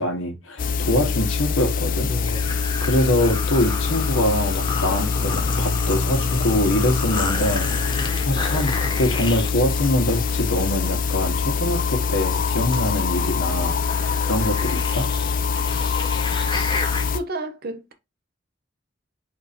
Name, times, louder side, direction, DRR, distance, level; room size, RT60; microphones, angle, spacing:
voice 1, 0.0-2.1 2.8-7.9 8.2-15.1, left 1 dB, 85° left, 1.4 m, -24 dB
sound 1, 0.6-17.2, left 5 dB, 45° left, 0.4 m, -24 dB
sound 2, 2.1-17.0, left 3 dB, 25° left, 1.0 m, -31 dB
voice 2, 17.1-17.9, right 2 dB, 50° right, 0.7 m, -31 dB
4.3 x 2.7 x 4.2 m
head